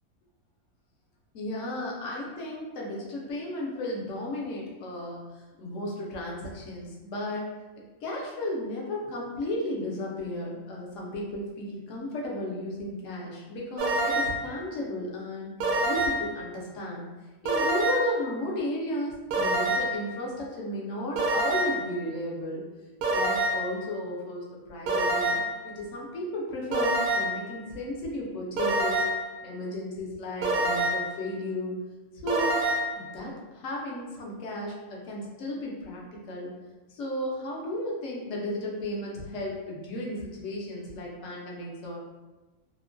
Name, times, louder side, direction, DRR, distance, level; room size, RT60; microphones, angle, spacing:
voice 1, 1.3-5.2 5.6-7.5 8.0-15.5 15.8-17.1 17.4-22.6 23.1-29.0 29.4-31.7 32.2-32.5 33.0-36.5 36.9-42.0, left 1 dB, 70° left, -3 dB, 1.0 m, -34 dB
sound 1, 13.8-14.5 15.6-16.3 17.5-18.2 19.3-20.0 21.2-21.9 23.0-23.7 24.9-25.6 26.7-27.5 28.6-29.3 30.4-31.2 32.3-33.0, right 1 dB, 75° right, 1.0 m, -26 dB
2.9 x 2.1 x 2.5 m, 1.2 s
omnidirectional pair, 1.4 m